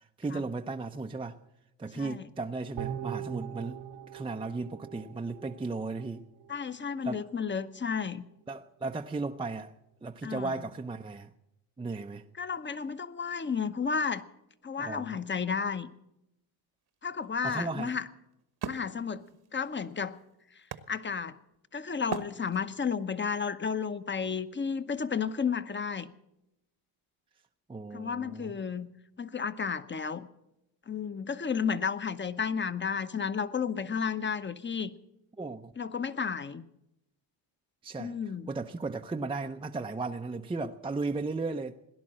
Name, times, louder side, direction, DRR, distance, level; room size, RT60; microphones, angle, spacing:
voice 1, 0.2-1.4 1.8-3.8 4.1-6.3 7.0-7.2 8.5-9.7 10.0-11.3 11.8-12.2 14.8-15.2 17.4-18.0 27.7-28.5 35.4-35.7 37.8-38.2 38.5-41.8, right 3 dB, 10° right, 0.6 m, -35 dB
voice 2, 1.9-2.3 6.5-8.3 10.2-10.5 12.4-14.2 14.6-15.9 17.0-18.0 18.6-19.2 19.5-20.2 20.9-21.4 21.7-26.1 27.9-28.9 29.2-30.3 30.9-34.9 35.8-36.6 38.0-38.5, left 6 dB, 25° left, 0.9 m, -32 dB
sound 1, 2.8-6.1 6.5-6.6, right 10 dB, 85° right, 1.7 m, -41 dB
Wood, 16.9-21.6 22.1-23.0, right 7 dB, 50° right, 1.2 m, -42 dB
18.0 x 11.0 x 7.5 m
supercardioid pair, 75°, 48 cm